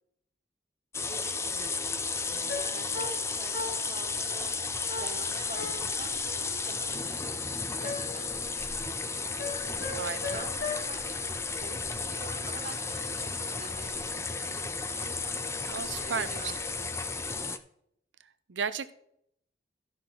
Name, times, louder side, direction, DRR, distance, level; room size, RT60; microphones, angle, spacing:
sound 1, 0.9-17.6, left 4 dB, 15° left, 0.5 m, -33 dB
voice 1, 1.0-1.7 2.3-4.5 5.0-7.4 7.7-9.3 10.3-17.4, right 2 dB, 40° right, 3 dB, 1.6 m, -47 dB
sound 2, 2.5-4.1 4.9-6.1 7.8-8.4 9.4-10.8, left 3 dB, 90° left, 2.1 m, -38 dB
voice 2, 9.9-10.5 15.7-16.5 18.5-18.9, right 6 dB, 90° right, 13 dB, 0.6 m, -34 dB
14.5 x 6.1 x 3.8 m, 0.72 s
head